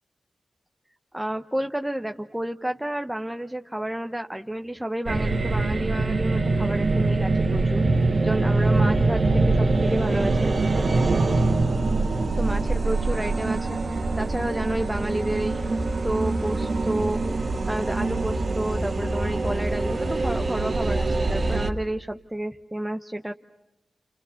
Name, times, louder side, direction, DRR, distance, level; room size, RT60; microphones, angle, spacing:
voice 1, 1.1-10.5 12.4-23.3, right 1 dB, 10° right, 5 dB, 0.9 m, -31 dB
sound 1, 5.1-21.7, right 3 dB, 55° right, 1.9 m, -24 dB
30.0 x 29.0 x 6.4 m, 0.92 s
cardioid pair, 60°, 0 cm